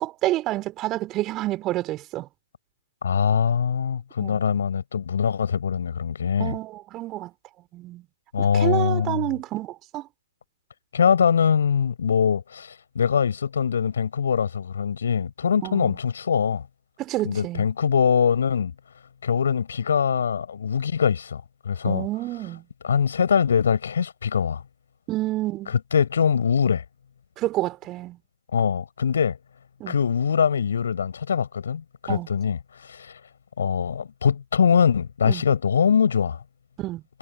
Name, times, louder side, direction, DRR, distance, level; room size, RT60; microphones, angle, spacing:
voice 1, 0.0-2.3 4.2-4.4 6.4-7.3 7.7-8.0 8.4-10.1 15.6-16.0 17.0-17.7 21.8-22.6 25.1-25.8 27.4-28.2 29.8-29.9 32.1-32.3 35.2-35.4 36.8-37.0, right 16 dB, 25° right, 3.1 m, -29 dB
voice 2, 3.0-6.5 8.3-9.3 10.9-16.7 17.3-18.7 19.2-22.1 22.8-24.6 25.9-26.8 28.5-29.4 29.9-33.1 33.6-36.4, left 7 dB, 65° left, 4.2 m, -23 dB
figure-of-eight pair, 120°, 0 cm